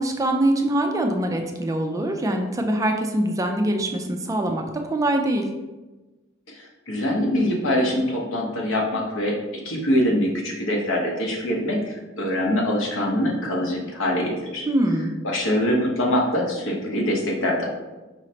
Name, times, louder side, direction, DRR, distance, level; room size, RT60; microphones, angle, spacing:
voice 1, 0.0-5.5 14.7-15.1, right 1 dB, 15° right, 4 dB, 0.3 m, -23 dB
voice 2, 6.5-9.4 9.6-14.7 15.2-17.7, left 1 dB, 80° left, -1 dB, 0.9 m, -24 dB
4.8 x 3.1 x 2.8 m, 1.1 s
head